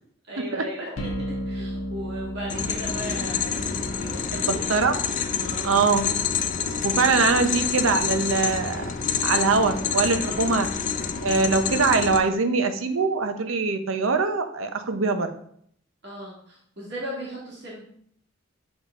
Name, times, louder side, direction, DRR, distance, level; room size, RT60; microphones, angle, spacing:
voice 1, 0.3-1.1 1.4-4.6 5.4-5.7 7.0-7.2 10.2-10.4 16.0-17.8, equal, 60° right, -5 dB, 1.8 m, -37 dB
sound 1, 1.0-11.0, equal, 85° left, 1.1 m, -38 dB
sound 2, 2.5-12.2, left 6 dB, 40° left, 0.5 m, -28 dB
voice 2, 4.3-4.9 5.6-6.1 6.8-8.8 9.2-10.7 11.2-15.3, right 4 dB, 90° right, 8 dB, 0.7 m, -22 dB
7.3 x 3.7 x 3.6 m, 0.65 s
head